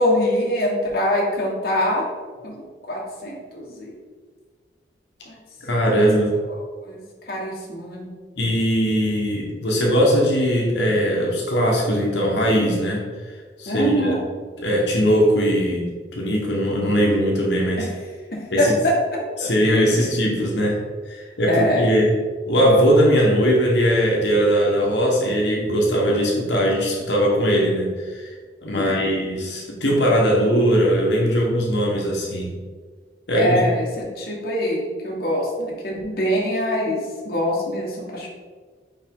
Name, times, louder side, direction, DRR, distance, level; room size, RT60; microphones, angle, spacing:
voice 1, 0.0-2.1 2.4-2.5 2.9-4.0 5.3-5.4 5.9-6.0 6.5-8.1 13.7-14.2 17.8-17.9 18.3-19.0 19.4-19.5 21.4-21.9 28.7-29.2 33.3-38.3, left 1 dB, 55° left, -3 dB, 1.4 m, -24 dB
voice 2, 5.6-6.4 8.4-14.2 14.6-17.9 18.5-18.7 19.4-20.8 21.0-28.4 28.6-32.5 33.3-33.6, equal, 70° left, -3 dB, 1.2 m, -20 dB
5.4 x 5.0 x 3.7 m, 1.5 s
head